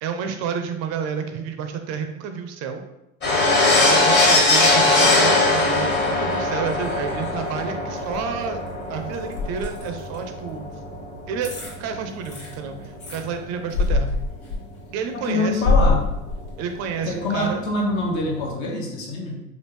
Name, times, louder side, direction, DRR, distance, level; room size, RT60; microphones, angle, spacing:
voice 1, 0.0-2.8 3.9-8.6 8.9-10.7 11.3-11.5 11.8-14.1 14.9-15.8 16.6-17.6, right 6 dB, 45° right, 6 dB, 0.5 m, -30 dB
sound 1, 3.2-12.9 13.2-13.3 13.5-13.6 16.1-16.2 16.4-16.5 16.7-18.5, left 2 dB, 25° left, 1.2 m, -21 dB
sound 2, 6.7-7.6 8.0-10.2 10.9-11.0 11.4-11.8 12.1-13.2 13.7-14.9 15.2-16.8 17.2-17.3, left 3 dB, 65° left, 1.4 m, -24 dB
voice 2, 15.1-16.1 17.1-19.4, left 2 dB, 50° left, -1 dB, 0.9 m, -25 dB
3.3 x 2.4 x 3.1 m, 0.89 s
supercardioid pair, 115°, 38 cm